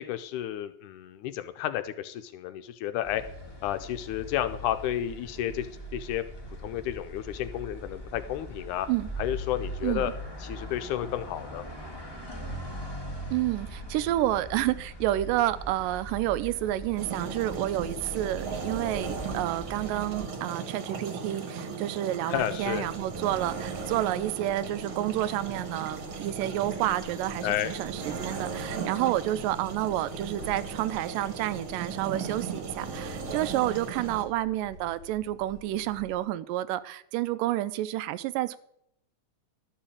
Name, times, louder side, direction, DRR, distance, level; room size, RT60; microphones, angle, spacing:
voice 1, 0.0-3.2 3.6-5.7 5.9-6.2 6.6-8.9 9.2-10.1 10.4-11.6 22.3-22.9 27.4-27.7, left 12 dB, 80° left, 9 dB, 1.9 m, -31 dB
sound 1, 3.0-20.3, equal, 15° left, 0.9 m, -41 dB
voice 2, 13.3-38.6, right 14 dB, 85° right, 16 dB, 2.2 m, -29 dB
sound 2, 17.0-34.2, right 5 dB, 50° right, 1.7 m, -37 dB
sound 3, 22.3-36.2, equal, 45° left, 1.5 m, -49 dB
12.0 x 5.7 x 8.5 m, 0.75 s
omnidirectional pair, 3.8 m